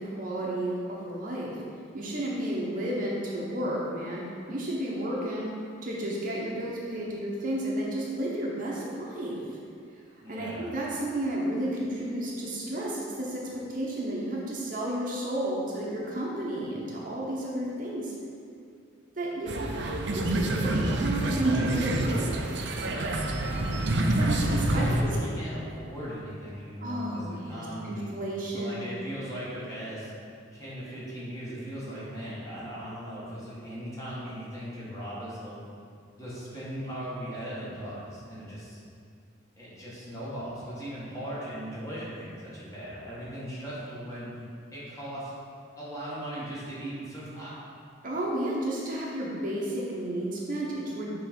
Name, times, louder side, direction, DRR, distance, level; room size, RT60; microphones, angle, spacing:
voice 1, 0.0-1.6 1.9-5.5 5.8-9.4 10.3-18.1 19.2-19.5 20.1-22.4 24.1-25.0 26.8-28.8 48.0-51.3, right 1 dB, 45° right, -4 dB, 0.8 m, -32 dB
voice 2, 10.2-10.7 24.8-28.1 28.5-30.1 30.5-35.7 36.2-38.8 39.6-44.4 44.7-45.3 45.8-47.5, equal, 15° left, -9 dB, 1.6 m, -38 dB
sound 1, 19.5-25.0, right 1 dB, 60° right, 0.5 m, -27 dB
6.5 x 3.7 x 5.2 m, 2.4 s
head